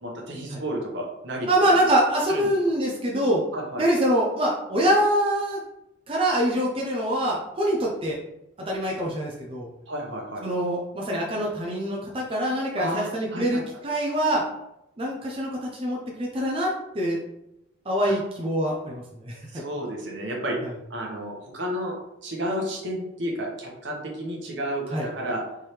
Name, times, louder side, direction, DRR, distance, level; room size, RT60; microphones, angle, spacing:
voice 1, 0.0-1.8 2.3-2.5 3.5-3.9 9.9-10.4 12.8-13.6 18.1-18.2 19.5-20.6 20.9-21.9 22.2-25.4, equal, 65° right, -1 dB, 1.1 m, -31 dB
voice 2, 1.5-3.4 3.8-5.6 6.1-8.2 8.7-9.7 10.4-14.4 15.0-17.2 17.9-19.6 20.6-20.7 24.9-25.1, right 1 dB, 30° right, -2 dB, 0.6 m, -24 dB
4.4 x 3.7 x 3.2 m, 0.85 s
head